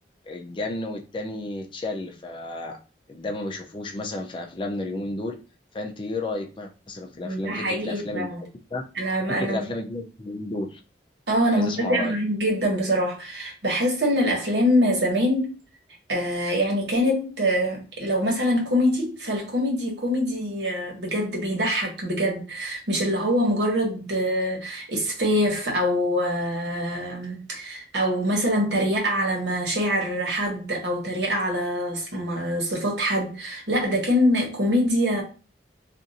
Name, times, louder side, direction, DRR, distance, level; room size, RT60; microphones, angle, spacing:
voice 1, 0.3-2.8 3.1-5.4 5.7-8.3 8.7-8.8 9.3-10.8 11.5-12.1, left 2 dB, 30° left, 0.4 m, -32 dB
voice 2, 7.2-8.5 8.9-9.7 11.3-15.5 16.1-35.2, equal, 80° right, 1.3 m, -24 dB
2.5 x 2.5 x 3.9 m
head